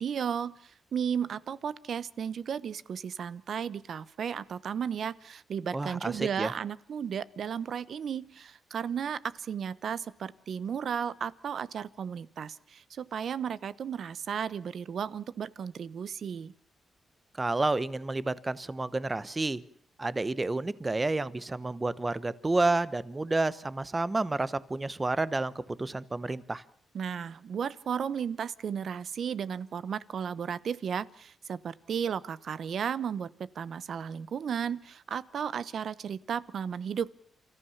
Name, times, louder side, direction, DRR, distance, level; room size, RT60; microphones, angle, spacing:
voice 1, 0.0-16.5 26.9-37.1, right 7 dB, 65° right, 18 dB, 0.9 m, -34 dB
voice 2, 5.7-6.5 17.4-19.6 20.0-25.5 25.8-26.6, right 2 dB, 20° right, 17 dB, 0.9 m, -30 dB
29.5 x 14.5 x 7.1 m, 0.64 s
cardioid pair, 110°, 0 cm